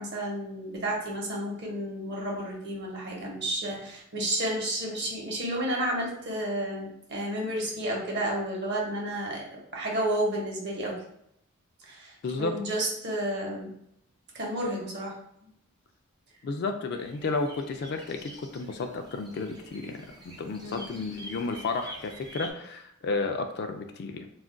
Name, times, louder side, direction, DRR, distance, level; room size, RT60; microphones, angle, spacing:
voice 1, 0.0-9.4 9.7-11.0 11.9-13.7 14.3-15.1 20.6-20.9, right 1 dB, 50° right, -2 dB, 0.8 m, -31 dB
voice 2, 12.2-12.5 16.4-20.0 20.2-24.3, left 3 dB, 50° left, 5 dB, 0.3 m, -32 dB
sound 1, 17.0-22.5, right 1 dB, 20° right, 0.4 m, -47 dB
2.4 x 2.2 x 3.6 m, 0.74 s
head